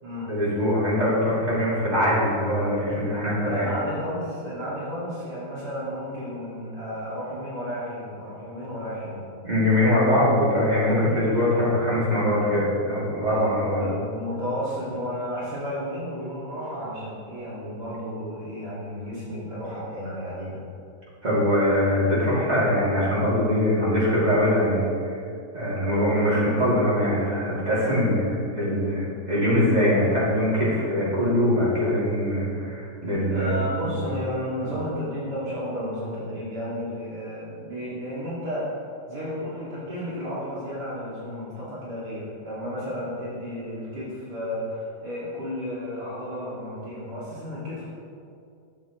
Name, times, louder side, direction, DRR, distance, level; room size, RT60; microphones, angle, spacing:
voice 1, 0.3-3.7 9.4-13.8 21.2-24.9 25.5-34.1 34.6-34.7, left 1 dB, 25° right, -8 dB, 2.5 m, -22 dB
voice 2, 3.4-9.3 11.5-11.7 13.3-20.6 33.1-47.9, equal, 70° right, -9 dB, 2.7 m, -32 dB
11.5 x 7.4 x 3.0 m, 2.5 s
omnidirectional pair, 1.9 m